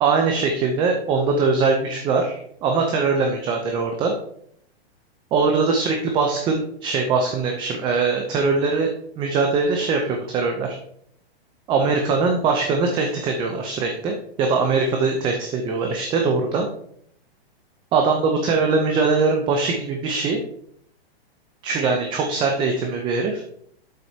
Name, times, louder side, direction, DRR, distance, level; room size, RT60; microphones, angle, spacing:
voice 1, 0.0-4.1 5.3-8.9 9.2-10.7 11.7-16.7 17.9-20.4 21.6-23.4, right 4 dB, 15° right, 3 dB, 0.5 m, -21 dB
8.4 x 7.5 x 2.8 m, 0.67 s
hypercardioid pair, 150°, 32 cm